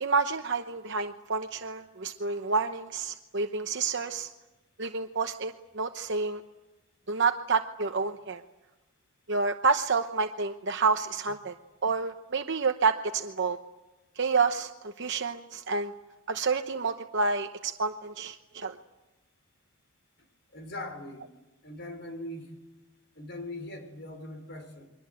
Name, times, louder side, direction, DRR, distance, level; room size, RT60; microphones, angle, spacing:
voice 1, 0.0-4.3 4.8-6.4 7.1-8.4 9.3-11.5 11.8-13.6 14.2-14.7 15.0-15.9 16.3-18.8, right 4 dB, 55° right, 6 dB, 0.9 m, -29 dB
voice 2, 20.5-21.3 21.6-22.6 23.2-24.9, left 1 dB, 50° left, 7 dB, 4.4 m, -40 dB
29.5 x 23.5 x 7.8 m, 1.1 s
head